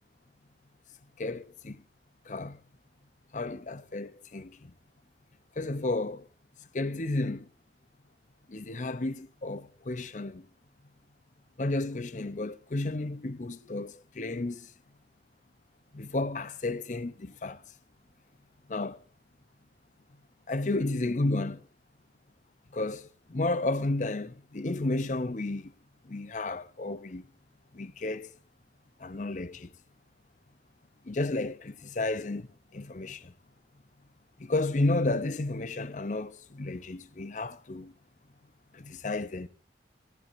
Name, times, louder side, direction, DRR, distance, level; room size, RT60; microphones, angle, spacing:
voice 1, 1.2-1.8 2.3-2.6 3.3-4.7 5.6-6.3 6.7-7.5 8.5-10.5 11.6-14.7 15.9-17.6 18.7-19.0 20.5-21.6 22.7-25.7 26.1-27.2 27.7-28.3 29.0-29.7 31.1-32.5 32.7-33.3 34.4-37.9 38.7-39.5, left 2 dB, 45° left, 0.6 m, -32 dB
25.5 x 12.0 x 2.6 m
head